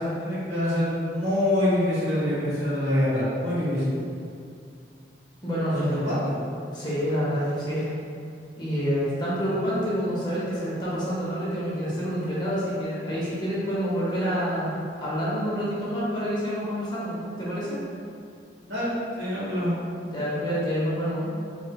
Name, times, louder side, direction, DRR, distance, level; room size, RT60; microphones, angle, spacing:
voice 1, 0.0-4.0 5.7-6.4 18.7-19.7, left 1 dB, 85° right, -10 dB, 1.4 m, -25 dB
voice 2, 5.4-6.1 6.7-7.9 8.6-17.8 20.0-21.3, equal, 25° left, -8 dB, 0.7 m, -28 dB
3.1 x 3.0 x 2.2 m, 2.4 s
head